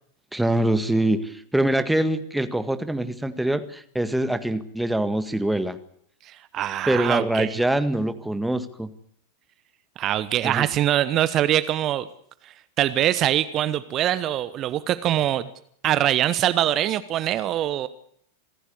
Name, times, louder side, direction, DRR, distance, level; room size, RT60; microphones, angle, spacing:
voice 1, 0.3-5.8 6.9-8.9 10.4-10.7, right 1 dB, 5° right, 10 dB, 1.8 m, -24 dB
voice 2, 6.2-7.6 10.0-12.1 12.4-15.5 15.8-17.9, right 12 dB, 35° right, 15 dB, 1.1 m, -23 dB
27.0 x 15.0 x 8.4 m, 0.67 s
figure-of-eight pair, 90°, 0 cm